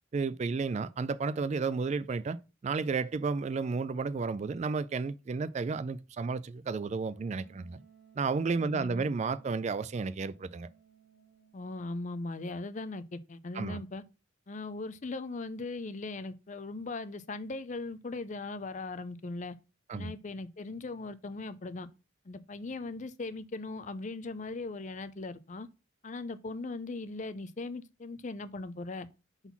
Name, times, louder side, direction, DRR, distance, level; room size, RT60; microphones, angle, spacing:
voice 1, 0.1-2.4 2.6-7.8 8.2-10.7 13.5-13.8 19.9-20.1, right 4 dB, 35° right, 0.3 m, -32 dB
Wind instrument woodwind instrument, 7.0-11.8, right 8 dB, 65° right, 1.9 m, -60 dB
voice 2, 8.6-9.1 11.5-14.0 14.5-19.6 19.9-21.9 22.3-25.7 26.0-29.1, left 3 dB, 40° left, 0.5 m, -39 dB
5.6 x 4.0 x 5.8 m
head